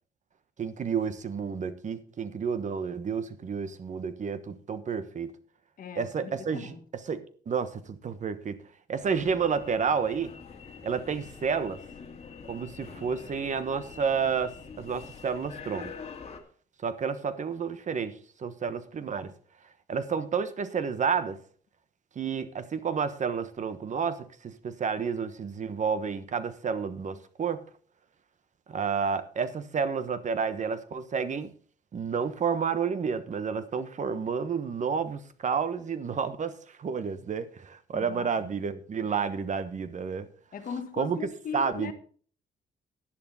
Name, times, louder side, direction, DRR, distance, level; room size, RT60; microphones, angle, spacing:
voice 1, 0.6-5.3 6.0-6.7 7.1-8.6 8.9-10.3 10.8-11.8 12.5-15.9 16.8-19.3 19.9-21.4 22.1-27.6 28.7-31.5 31.9-36.5 36.8-40.3 41.0-41.2 41.5-41.9, right 6 dB, 50° right, 1.2 m, -30 dB
voice 2, 5.8-6.8 37.9-38.5 40.5-41.9, left 6 dB, 60° left, 1.6 m, -39 dB
sound 1, 9.0-16.4, left 5 dB, 40° left, 2.2 m, -45 dB
11.0 x 10.5 x 4.2 m
cardioid pair, 110°, 16 cm